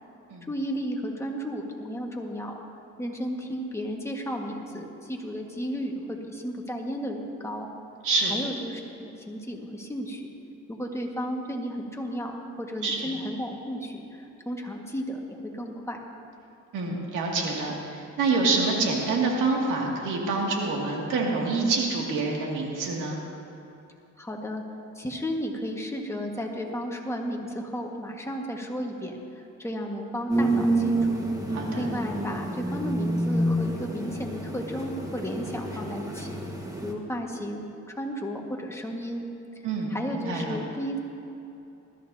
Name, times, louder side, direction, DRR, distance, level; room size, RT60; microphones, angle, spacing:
voice 1, 0.5-2.5 3.0-7.7 8.3-10.3 10.7-16.0 24.2-24.6 24.9-31.2 31.7-36.4 36.8-37.6 38.0-39.2 39.9-41.0, equal, 10° left, 0 dB, 1.7 m, -33 dB
voice 2, 12.8-13.1 16.7-23.2 31.5-31.9 39.6-40.6, right 3 dB, 85° right, -2 dB, 2.4 m, -27 dB
sound 1, 30.3-36.9, right 1 dB, 10° right, 1.6 m, -28 dB
20.0 x 13.5 x 2.8 m, 2.7 s
cardioid pair, 90°, 30 cm